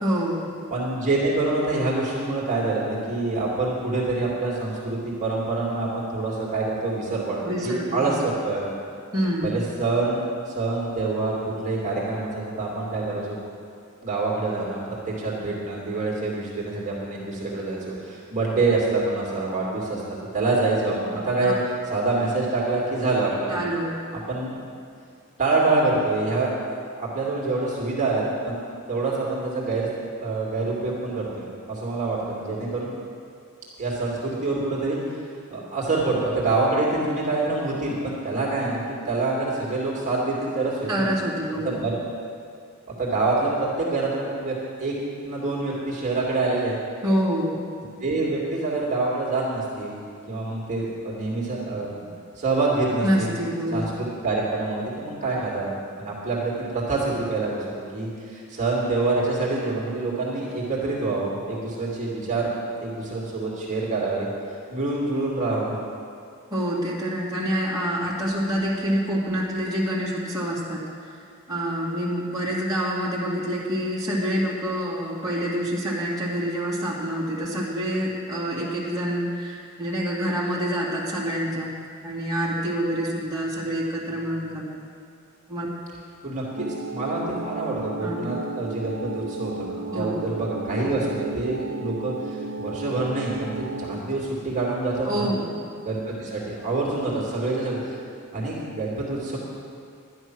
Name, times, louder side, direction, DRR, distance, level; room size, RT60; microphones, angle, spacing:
voice 1, 0.0-0.4 7.4-8.1 9.1-9.6 21.4-21.5 23.5-24.0 40.9-41.8 47.0-47.6 53.0-53.9 66.5-70.8 71.5-81.7 82.0-84.7 85.5-85.7 88.0-88.2 89.9-90.2 95.0-95.6, equal, 15° right, -8 dB, 2.4 m, -26 dB
voice 2, 0.7-8.7 9.4-13.4 14.0-21.6 21.9-23.6 24.1-24.7 25.4-26.6 27.0-28.6 28.9-29.9 30.2-32.9 33.8-35.2 35.5-41.1 41.6-42.0 43.0-44.9 45.2-46.8 48.0-50.0 50.3-52.1 52.4-53.3 53.7-62.5 62.8-64.3 64.7-65.8 86.2-95.3 95.9-98.0 98.3-99.4, right 3 dB, 35° right, -5 dB, 2.5 m, -26 dB
sound 1, 86.6-94.0, right 2 dB, 70° right, 0.5 m, -34 dB
11.5 x 10.5 x 6.2 m, 2.3 s
head